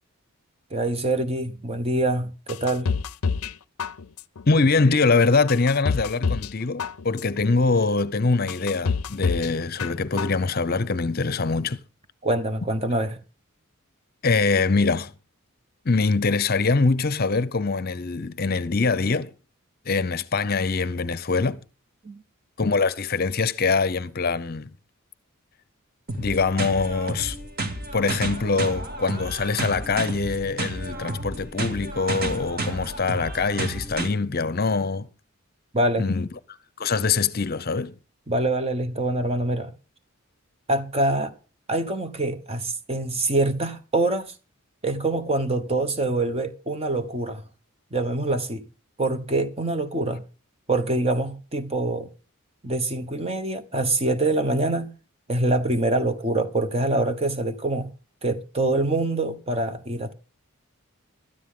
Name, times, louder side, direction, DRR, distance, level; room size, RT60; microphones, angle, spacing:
voice 1, 0.7-2.9 12.2-13.2 22.0-22.2 35.7-36.1 38.3-39.7 40.7-41.3 41.7-44.3 44.8-47.4 47.9-48.7 49.0-50.2 50.7-52.1 52.6-54.9 55.3-57.9 58.2-60.1, right 2 dB, 30° right, 1.1 m, -25 dB
sound 1, 2.5-3.5 3.8-4.4 4.9-5.0 5.5-6.5 6.8-7.4 7.9-8.0 8.5-9.5 9.8-10.4 10.7-10.8, left 5 dB, 85° left, 0.6 m, -27 dB
voice 2, 4.5-11.8 14.2-15.1 15.8-19.3 19.9-21.6 22.6-24.7 26.2-27.4 27.9-35.1 36.0-36.3 36.8-38.0, left 4 dB, 45° left, 0.7 m, -23 dB
sound 2, 26.1-34.1, right 2 dB, 45° right, 2.1 m, -31 dB
17.5 x 13.0 x 3.7 m
head